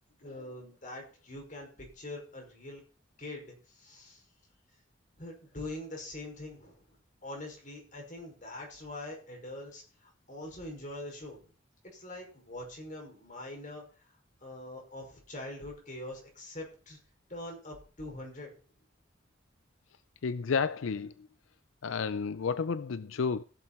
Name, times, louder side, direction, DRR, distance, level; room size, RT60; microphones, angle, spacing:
voice 1, 0.2-2.8 3.2-4.2 5.2-6.8 7.2-11.5 11.8-14.1 14.4-17.0 17.3-18.5, left 1 dB, 40° left, 5.6 m, -43 dB
voice 2, 20.2-21.3 21.8-23.4, left 5 dB, 80° left, 0.5 m, -31 dB
15.5 x 7.3 x 4.4 m
head